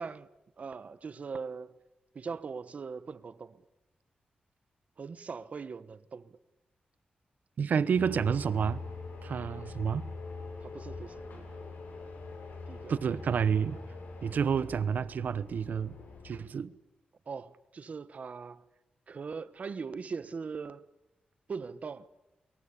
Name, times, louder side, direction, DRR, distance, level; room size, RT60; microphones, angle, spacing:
voice 1, 0.0-1.8 2.1-3.6 5.0-6.4 10.6-11.5 12.7-13.0 17.3-18.6 19.1-20.9 21.5-22.1, right 5 dB, 50° right, 1.1 m, -41 dB
voice 2, 7.6-8.8 9.2-10.1 12.9-13.8 14.2-16.0 16.2-16.7, right 7 dB, 75° right, 1.0 m, -29 dB
sound 1, 7.9-16.4, left 3 dB, 85° left, 7.8 m, -43 dB
24.0 x 22.5 x 10.0 m
wide cardioid pair, 115°, 3 cm